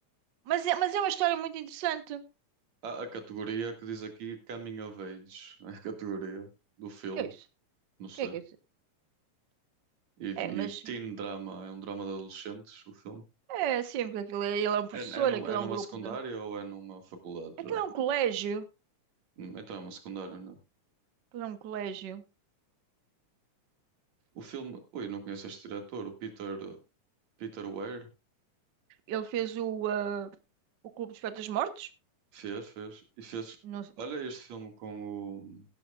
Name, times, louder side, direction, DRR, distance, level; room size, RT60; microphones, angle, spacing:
voice 1, 0.5-2.2 7.2-7.3 8.2-8.4 10.4-10.8 13.5-16.2 17.7-18.7 21.3-22.2 29.1-30.3 31.0-31.9 33.6-33.8, right 10 dB, 80° right, 11 dB, 0.9 m, -32 dB
voice 2, 2.8-6.5 6.8-7.3 8.0-8.4 10.2-13.2 14.9-17.8 19.4-20.6 24.3-26.8 27.4-28.1 32.3-33.6 34.0-35.7, right 5 dB, 65° right, 6 dB, 3.2 m, -39 dB
15.5 x 12.0 x 2.4 m, 0.26 s
omnidirectional pair, 3.5 m